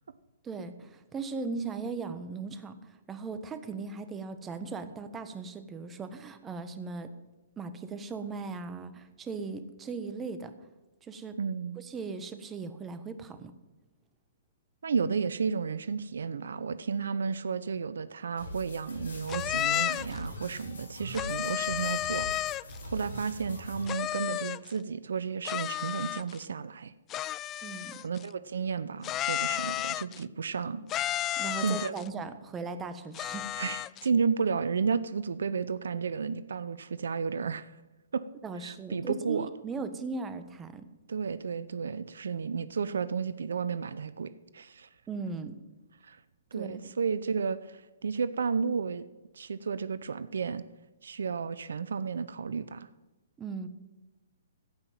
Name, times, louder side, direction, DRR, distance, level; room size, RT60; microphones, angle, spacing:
voice 1, 0.4-7.1 7.6-10.5 11.0-11.4 11.8-13.5 27.6-27.9 31.4-33.5 38.4-40.9 45.1-45.6 46.5-46.9 53.4-53.7, right 4 dB, 15° right, 10 dB, 1.2 m, -38 dB
voice 2, 11.4-11.8 14.8-22.3 22.8-26.9 28.0-30.9 31.6-32.0 33.6-37.7 38.1-38.2 38.6-39.5 41.1-44.9 46.0-46.2 46.5-49.0 49.3-50.6 51.0-52.9, right 5 dB, 75° right, 15 dB, 0.7 m, -32 dB
sound 1, 18.4-23.8, equal, 80° left, 5.7 m, -42 dB
sound 2, 19.3-20.2 21.1-22.8 23.9-24.7 25.4-26.4 27.1-28.2 29.0-30.2 30.9-32.1 33.1-34.1, left 13 dB, 25° left, 0.3 m, -32 dB
15.5 x 5.9 x 9.0 m, 1.1 s
hypercardioid pair, 130°, 0 cm